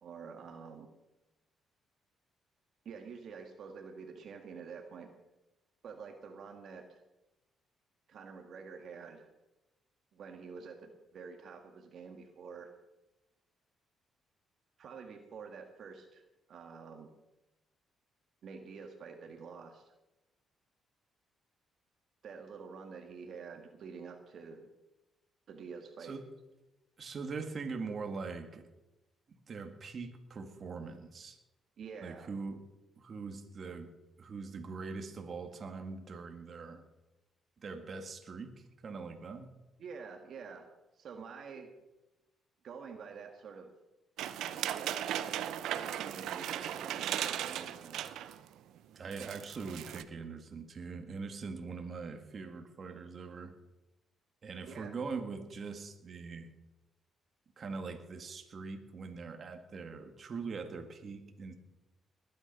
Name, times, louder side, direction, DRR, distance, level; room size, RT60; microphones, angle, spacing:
voice 1, 0.0-0.9 2.8-5.1 5.8-7.0 8.1-9.3 10.1-12.7 14.8-16.2 16.5-17.1 18.4-19.9 22.2-24.7 25.5-26.1 31.8-32.3 39.8-40.7 40.9-41.7 42.6-43.7 44.4-45.0 45.7-48.0 54.6-54.9, right 5 dB, 65° right, 4 dB, 1.7 m, -48 dB
voice 2, 27.0-28.6 29.5-31.4 32.0-32.6 33.0-33.9 34.2-36.8 37.6-38.5 38.8-39.5 49.0-53.5 54.4-56.5 57.6-61.5, right 4 dB, 45° right, 5 dB, 1.9 m, -42 dB
sound 1, 44.2-48.4 48.8-48.9 49.1-50.0, right 11 dB, 85° right, 0.8 m, -37 dB
20.0 x 9.8 x 5.4 m, 1.0 s
cardioid pair, 90°, 0 cm